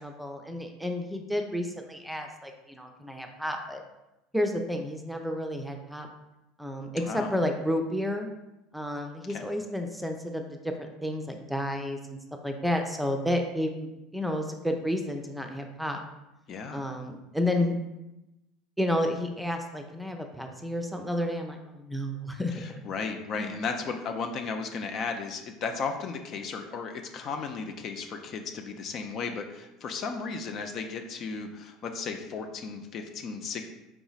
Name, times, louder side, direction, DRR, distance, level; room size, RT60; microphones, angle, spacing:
voice 1, 0.0-3.8 4.3-6.1 6.6-8.3 8.7-12.2 12.4-16.0 16.7-17.8 18.8-22.7 23.4-23.5, left 1 dB, ahead, 4 dB, 0.6 m, -31 dB
voice 2, 6.9-7.3 9.3-9.4 16.5-16.8 22.5-33.6, left 5 dB, 50° left, 5 dB, 0.6 m, -35 dB
4.6 x 2.9 x 4.0 m, 0.94 s
hypercardioid pair, 75°, 0 cm